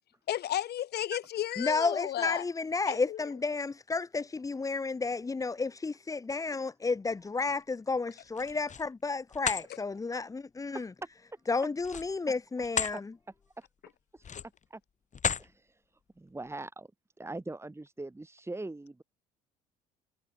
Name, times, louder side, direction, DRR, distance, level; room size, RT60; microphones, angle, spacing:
voice 1, 0.3-2.4 2.9-3.2, left 12 dB, 50° left, 1.3 m, -33 dB
voice 2, 1.6-10.9 11.5-13.0, left 4 dB, 15° left, 0.7 m, -32 dB
sound 1, 8.3-8.9 9.3-9.7 11.8-13.0 13.4-13.6 14.2-14.6 15.1-15.5, left 7 dB, 35° left, 2.0 m, -33 dB
voice 3, 15.4-15.8 16.2-16.9 17.2-19.0, right 2 dB, 10° right, 2.3 m, -41 dB
hypercardioid pair, 60°, 21 cm